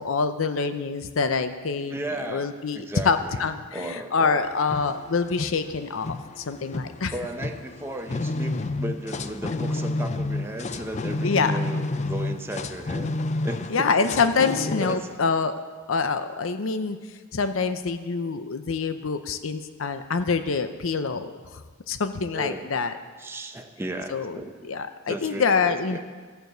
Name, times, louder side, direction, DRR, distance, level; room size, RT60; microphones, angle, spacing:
voice 1, 0.0-7.1 11.2-11.6 13.7-15.5 15.9-17.0 17.3-22.9 24.1-24.4 24.7-26.0, left 5 dB, 80° left, 10 dB, 0.6 m, -26 dB
voice 2, 1.9-4.5 7.1-13.1 13.4-14.1 14.8-15.1 22.3-22.7 23.2-24.7 25.1-26.0, right 1 dB, 10° right, 4 dB, 0.8 m, -35 dB
sound 1, 4.4-15.2, left 2 dB, 35° left, 0.5 m, -30 dB
13.5 x 6.8 x 7.9 m, 1.5 s
head